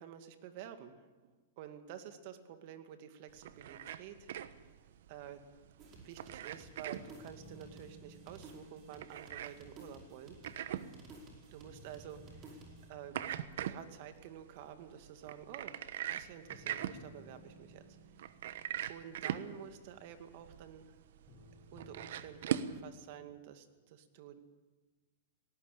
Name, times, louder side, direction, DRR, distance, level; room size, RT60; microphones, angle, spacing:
voice 1, 0.0-4.3 4.6-4.7 5.1-5.4 5.9-10.4 11.5-12.6 12.9-13.2 13.6-17.8 18.9-20.9 21.7-24.4, right 9 dB, 50° right, 8 dB, 2.3 m, -50 dB
sound 1, 3.3-22.8, right 10 dB, 65° right, 1.1 m, -43 dB
sound 2, 5.8-12.9, right 2 dB, 30° right, 4.9 m, -56 dB
sound 3, 6.9-11.3 11.7-15.0 16.5-20.5 21.3-23.4, equal, 15° left, 7.8 m, -59 dB
19.0 x 18.0 x 8.5 m, 1.3 s
hypercardioid pair, 140°, 0 cm